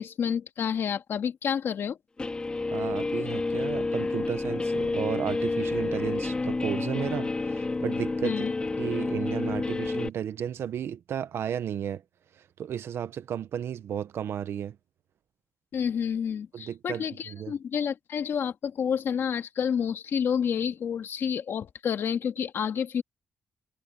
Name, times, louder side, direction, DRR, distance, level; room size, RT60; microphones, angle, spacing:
voice 1, 0.0-2.0 8.2-8.5 15.7-23.0, left 7 dB, 65° left, 1.9 m, -29 dB
Guitar, 2.2-10.1, left 3 dB, 20° left, 1.9 m, -29 dB
voice 2, 2.7-8.5 8.8-12.0 12.6-14.8 16.5-17.5, right 9 dB, 70° right, 1.0 m, -33 dB
wide cardioid pair, 150°, 4 cm